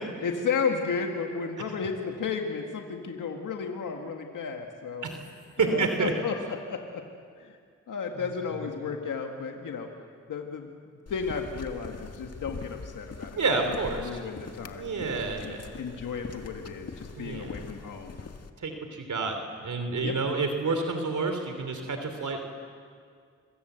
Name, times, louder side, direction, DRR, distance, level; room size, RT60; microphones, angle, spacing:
voice 1, 0.2-5.1 5.6-7.0 7.4-7.6 7.9-9.9 10.3-10.7 11.1-13.4 13.7-14.9 15.4-18.2 20.0-20.2, left 5 dB, 90° left, 3 dB, 1.8 m, -33 dB
voice 2, 5.6-6.1 8.1-8.2 8.5-8.6 13.4-14.1 14.8-15.7 17.2-17.7 18.6-22.4, right 4 dB, 70° right, 5 dB, 3.1 m, -29 dB
sound 1, 11.1-18.5, left 4 dB, 50° left, 1.9 m, -43 dB
26.0 x 25.0 x 8.0 m, 2.1 s
cardioid pair, 45°, 31 cm